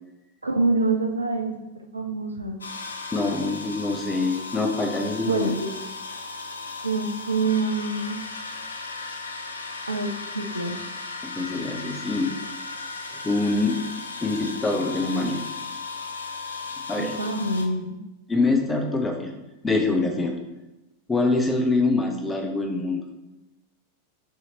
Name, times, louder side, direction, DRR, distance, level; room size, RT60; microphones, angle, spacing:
voice 1, 0.4-2.6 5.2-5.7 6.8-8.2 9.9-10.8 17.0-18.0, right 3 dB, 80° right, 4 dB, 0.4 m, -26 dB
sound 1, 2.6-17.7, left 3 dB, 75° left, 0.4 m, -36 dB
voice 2, 3.1-5.5 11.2-12.3 13.2-13.8 14.2-15.4 16.9-17.2 18.3-19.3 19.6-20.3 21.1-23.0, left 3 dB, 15° left, 3 dB, 0.6 m, -24 dB
5.7 x 2.9 x 2.8 m, 0.97 s
figure-of-eight pair, 90°, 0 cm